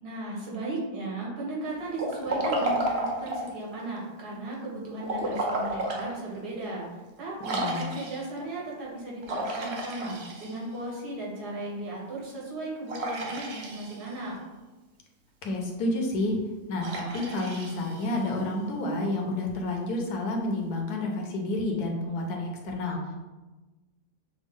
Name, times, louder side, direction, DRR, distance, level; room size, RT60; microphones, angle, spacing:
voice 1, 0.0-14.4, right 2 dB, 80° right, -4 dB, 1.8 m, -36 dB
Liquid, 1.9-3.6 5.0-6.1 6.6-6.7 7.4-8.4 9.2-10.8 12.9-14.2 16.8-18.4, right 1 dB, 55° right, 0.8 m, -32 dB
voice 2, 7.5-7.9 15.4-16.4 16.7-23.2, left 2 dB, 75° left, 1 dB, 1.3 m, -30 dB
6.1 x 2.1 x 3.6 m, 1.2 s
omnidirectional pair, 1.7 m